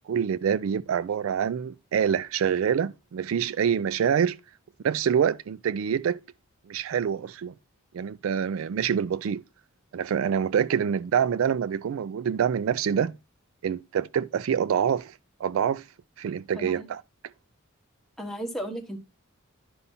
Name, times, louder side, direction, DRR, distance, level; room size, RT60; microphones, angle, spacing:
voice 1, 0.1-4.4 4.8-6.2 6.7-7.5 7.9-9.4 9.9-13.1 13.6-15.1 15.4-15.8 16.2-17.0, right 8 dB, 75° right, 0.3 m, -26 dB
voice 2, 16.6-16.9 18.2-19.0, right 1 dB, ahead, 1.2 m, -34 dB
11.0 x 5.5 x 2.7 m
head